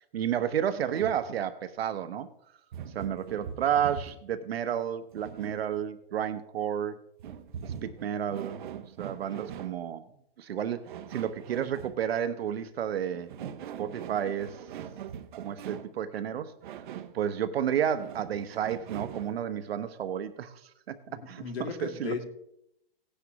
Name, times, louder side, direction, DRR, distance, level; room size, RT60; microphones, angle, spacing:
voice 1, 0.1-2.3 2.9-7.0 7.6-8.6 9.0-10.0 10.4-13.3 13.8-14.6 15.4-16.5 17.1-20.6 20.9-21.4 21.8-22.1, right 9 dB, 80° right, 10 dB, 1.1 m, -31 dB
sound 1, 0.9-1.3 2.7-4.3 5.1-5.8 7.2-9.8 10.9-12.0 13.1-16.0 16.6-17.2 18.0-19.4, right 8 dB, 55° right, 0.8 m, -42 dB
voice 2, 21.1-22.3, left 6 dB, 85° left, 3 dB, 2.4 m, -36 dB
17.0 x 10.0 x 3.0 m, 0.76 s
hypercardioid pair, 165°, 30 cm